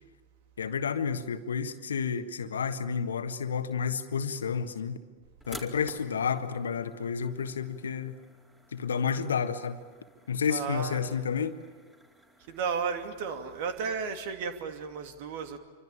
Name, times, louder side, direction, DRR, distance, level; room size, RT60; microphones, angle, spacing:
voice 1, 0.6-5.0 5.5-8.1 8.7-9.8 10.3-11.5, left 6 dB, 70° left, 9 dB, 1.5 m, -30 dB
sound 1, 5.4-14.2, equal, 10° right, 4.2 m, -52 dB
voice 2, 10.5-11.0 12.5-15.6, right 6 dB, 50° right, 7 dB, 2.6 m, -33 dB
28.0 x 24.5 x 8.6 m, 1.5 s
figure-of-eight pair, 95°, 0 cm